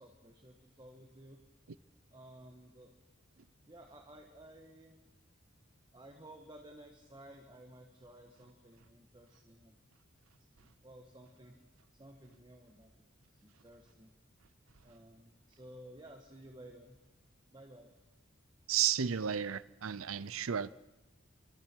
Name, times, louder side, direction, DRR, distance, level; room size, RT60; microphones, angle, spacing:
voice 1, 0.0-1.4 2.1-2.9 3.6-5.0 5.9-9.8 10.4-11.6 11.9-13.1 13.4-14.1 14.8-17.0 17.5-18.0, right 1 dB, 20° right, 1.6 m, -55 dB
voice 2, 18.7-20.7, right 9 dB, 80° right, 0.6 m, -33 dB
26.5 x 25.0 x 4.7 m
head